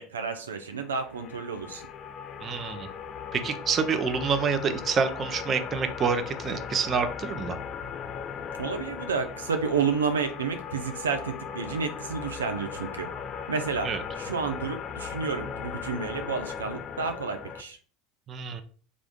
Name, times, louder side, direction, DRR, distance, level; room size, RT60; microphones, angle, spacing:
voice 1, 0.0-1.9 8.6-13.1 13.5-13.9 14.2-17.8, right 5 dB, 85° right, 6 dB, 0.4 m, -30 dB
sound 1, 0.8-17.6, left 7 dB, 40° left, 0.3 m, -38 dB
voice 2, 2.4-2.9 3.3-7.6 13.8-14.0 18.3-18.6, right 5 dB, 35° right, 9 dB, 0.6 m, -27 dB
3.5 x 2.4 x 3.5 m, 0.42 s
hypercardioid pair, 80°, 0 cm